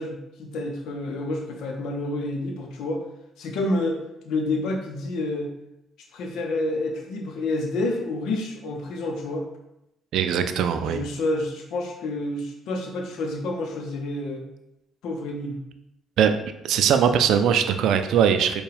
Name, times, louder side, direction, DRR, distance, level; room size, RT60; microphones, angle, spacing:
voice 1, 0.0-3.0 3.4-4.0 4.2-5.5 6.1-9.4 10.8-14.5 15.0-15.6, left 2 dB, 75° left, 2 dB, 0.7 m, -29 dB
voice 2, 10.1-11.0 16.2-16.3 16.6-18.6, right 8 dB, 70° right, 8 dB, 0.3 m, -20 dB
4.4 x 2.3 x 3.4 m, 0.85 s
supercardioid pair, 65°, 0 cm